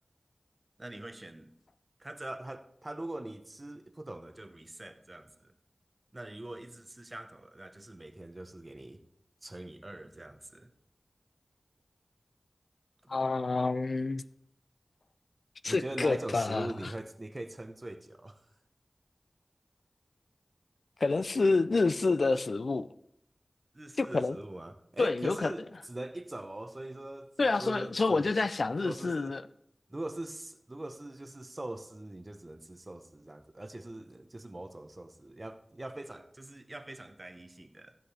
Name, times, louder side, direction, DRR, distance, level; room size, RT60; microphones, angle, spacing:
voice 1, 0.8-1.5 2.0-5.5 6.1-9.0 9.4-10.7 15.7-18.4 23.7-28.3 28.8-29.4 29.9-37.9, right 1 dB, 35° right, 0.9 m, -42 dB
voice 2, 13.1-14.2 15.6-16.9 21.0-22.9 24.0-24.4 25.0-25.5 27.4-29.4, left 3 dB, 85° left, 0.3 m, -28 dB
15.0 x 7.6 x 3.4 m
wide cardioid pair, 50°, 0 cm